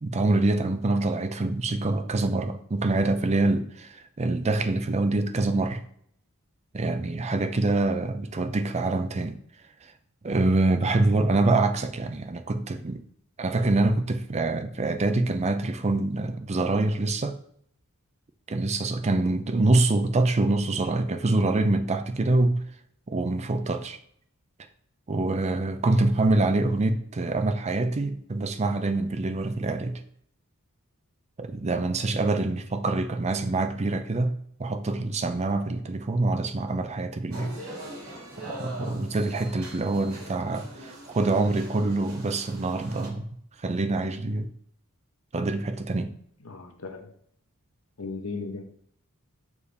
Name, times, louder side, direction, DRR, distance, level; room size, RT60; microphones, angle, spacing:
voice 1, 0.0-5.8 6.7-9.4 9.8-9.9 10.2-13.0 13.4-17.4 18.5-22.6 23.1-24.0 25.1-30.0 31.4-37.6 38.4-43.3 43.6-44.5 45.3-46.1, right 2 dB, 30° right, 0.5 m, -25 dB
sound 1, 37.3-43.1, right 1 dB, 65° right, 2.4 m, -42 dB
voice 2, 46.4-47.1 48.0-48.6, left 4 dB, 70° left, 1.0 m, -36 dB
6.7 x 4.7 x 3.3 m
head